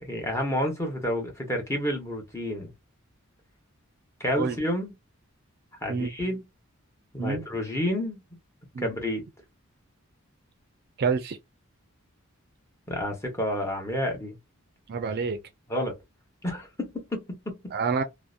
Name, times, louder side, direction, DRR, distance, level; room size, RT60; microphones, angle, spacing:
voice 1, 0.0-2.7 4.2-4.9 5.8-6.4 7.1-8.2 8.8-9.2 12.9-14.4 15.7-16.0 16.4-17.7, equal, 15° left, 0.9 m, -30 dB
voice 2, 11.0-11.4 14.9-15.4 17.7-18.0, right 5 dB, 45° right, 0.4 m, -27 dB
2.7 x 2.0 x 2.3 m
head